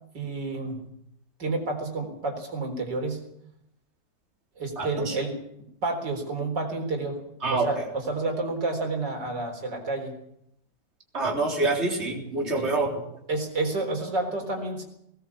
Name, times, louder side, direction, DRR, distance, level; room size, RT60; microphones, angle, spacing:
voice 1, 0.1-0.8 1.4-3.2 4.6-5.4 5.8-7.2 7.5-10.1 13.3-14.9, right 2 dB, 85° right, 2 dB, 4.6 m, -29 dB
voice 2, 4.8-5.2 7.4-7.7 11.1-12.9, right 3 dB, 40° right, -1 dB, 4.0 m, -26 dB
20.0 x 19.0 x 7.1 m, 0.75 s
omnidirectional pair, 1.8 m